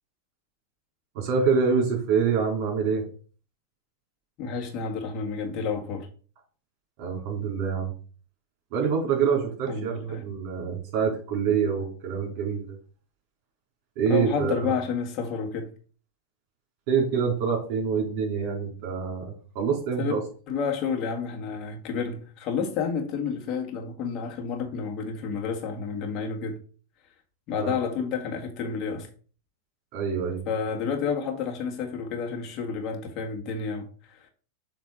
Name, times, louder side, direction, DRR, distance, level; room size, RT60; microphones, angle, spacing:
voice 1, 1.1-3.0 7.0-7.9 8.7-12.8 14.0-14.7 16.9-20.2 27.6-27.7 29.9-30.4, right 6 dB, 50° right, 3.5 m, -26 dB
voice 2, 4.4-6.1 9.7-10.2 14.1-15.7 20.0-20.2 20.5-26.6 27.5-29.1 30.5-34.3, left 6 dB, 45° left, 1.8 m, -30 dB
7.5 x 3.3 x 5.0 m
hypercardioid pair, 115°, 0 cm